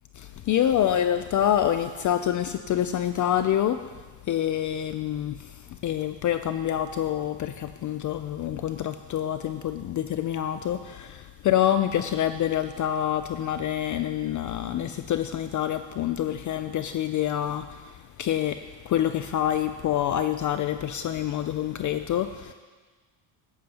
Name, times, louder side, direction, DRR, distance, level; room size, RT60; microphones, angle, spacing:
voice 1, 0.1-3.9 4.2-22.5, left 11 dB, 40° left, 9 dB, 0.4 m, -27 dB
15.5 x 12.0 x 2.9 m, 1.4 s
cardioid pair, 105°, 49 cm